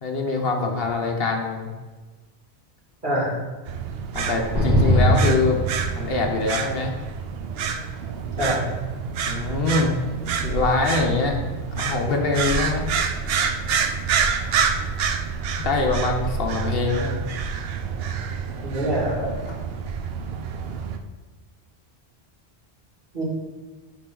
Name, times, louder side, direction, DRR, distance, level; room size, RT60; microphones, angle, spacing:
voice 1, 0.0-1.7 4.1-5.6 5.9-6.9 9.3-10.0 10.4-11.4 11.7-12.8 15.6-17.2, left 3 dB, 65° left, 2 dB, 1.1 m, -24 dB
voice 2, 3.0-3.4 8.4-8.7 18.6-19.3 23.1-23.2, right 1 dB, 45° right, -6 dB, 2.5 m, -24 dB
sound 1, 3.7-21.0, right 6 dB, 70° right, 0.8 m, -28 dB
sound 2, 4.5-6.5, equal, 20° right, 1.9 m, -20 dB
10.5 x 4.1 x 3.8 m, 1.3 s
omnidirectional pair, 1.1 m